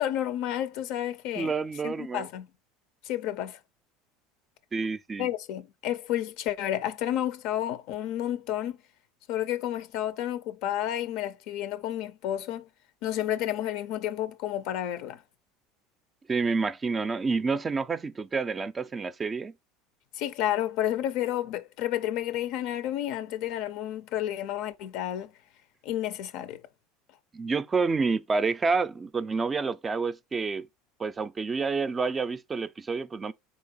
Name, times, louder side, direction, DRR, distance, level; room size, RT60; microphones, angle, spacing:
voice 1, 0.0-1.5 1.8-2.5 3.0-3.6 5.2-8.8 9.3-12.7 13.0-15.2 20.1-25.3 25.8-26.6, left 12 dB, 65° left, 0.4 m, -31 dB
voice 2, 1.4-2.3 4.7-5.3 16.3-19.5 27.3-30.7 31.0-33.3, right 4 dB, 25° right, 0.4 m, -28 dB
3.9 x 2.9 x 3.9 m
hypercardioid pair, 90°, 0 cm